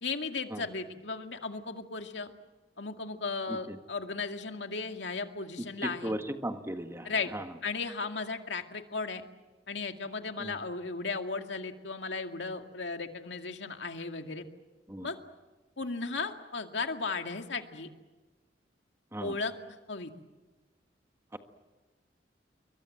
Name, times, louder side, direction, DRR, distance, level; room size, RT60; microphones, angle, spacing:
voice 1, 0.0-2.3 2.8-6.1 7.0-7.3 7.6-9.2 9.7-14.5 15.0-15.2 15.8-17.9 19.2-19.5 19.9-20.1, left 4 dB, 80° left, 5 dB, 2.2 m, -35 dB
voice 2, 5.8-7.5 10.4-10.5 14.9-15.1 19.1-19.4 21.3-21.4, right 1 dB, 15° right, 6 dB, 1.6 m, -37 dB
28.5 x 23.5 x 7.8 m, 1.2 s
head